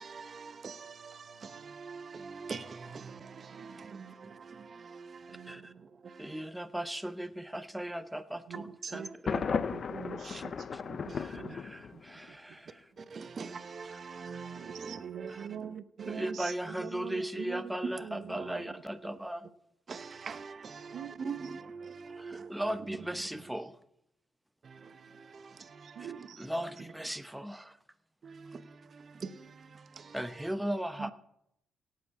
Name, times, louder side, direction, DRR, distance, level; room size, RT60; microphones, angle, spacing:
voice 1, 0.0-6.5 8.7-9.6 11.1-11.4 13.0-16.3 17.8-17.9 18.2-18.7 19.0-19.1 19.9-23.0 23.3-23.4 24.6-26.7 28.2-30.5 31.0-31.1, right 5 dB, 45° right, 0.9 m, -44 dB
voice 2, 3.5-4.1 5.3-5.8 6.2-6.3 8.5-11.6 11.9-12.0 12.3-12.6 14.5-17.7 18.0-18.8 20.9-21.3 25.8-26.5, right 8 dB, 65° right, 0.5 m, -45 dB
voice 3, 5.3-5.7 6.2-9.6 10.2-10.4 10.7-10.8 11.1-12.9 16.1-19.5 22.1-23.7 26.4-27.8 30.1-31.1, right 1 dB, 5° right, 0.7 m, -37 dB
Thunder, 9.3-12.3, left 6 dB, 45° left, 0.5 m, -35 dB
17.5 x 7.6 x 4.8 m
cardioid pair, 90°, 0 cm